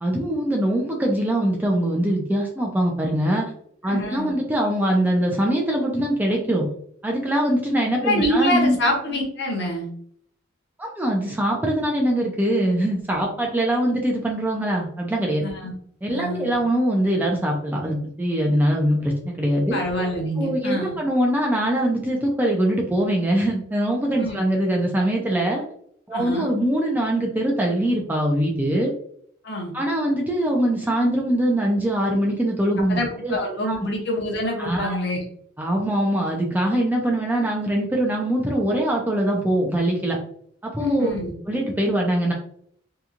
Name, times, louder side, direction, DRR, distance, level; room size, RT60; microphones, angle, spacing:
voice 1, 0.0-3.4 3.8-6.7 7.0-8.8 10.8-15.4 16.0-19.8 20.4-25.6 26.1-28.9 29.7-33.8 34.6-35.0 35.6-40.2 40.6-41.1 41.5-42.3, right 1 dB, 10° right, -1 dB, 0.3 m, -22 dB
voice 2, 3.8-4.3 8.0-9.9 15.4-15.7 16.1-16.6 19.7-21.0 24.2-24.4 26.1-26.5 29.4-29.7 32.9-35.2 40.8-41.3, left 1 dB, 55° left, 0 dB, 0.8 m, -26 dB
2.8 x 2.3 x 2.4 m, 0.66 s
head